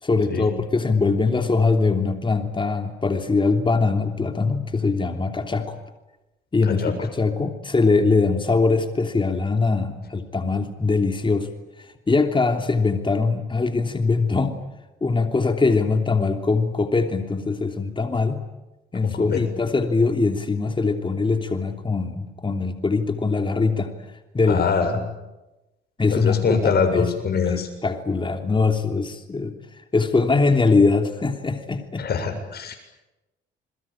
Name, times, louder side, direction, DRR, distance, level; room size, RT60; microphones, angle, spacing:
voice 1, 0.0-5.8 6.5-11.5 11.8-14.6 15.0-18.4 18.9-23.9 24.3-24.7 24.9-25.1 26.0-27.1 27.5-29.6 29.9-32.1, left 4 dB, 25° left, 5 dB, 3.2 m, -22 dB
voice 2, 19.0-19.4 24.5-24.9 26.1-27.7 32.0-32.8, left 5 dB, 55° left, 6 dB, 7.4 m, -23 dB
29.0 x 22.0 x 8.9 m, 1.0 s
cardioid pair, 90°, 20 cm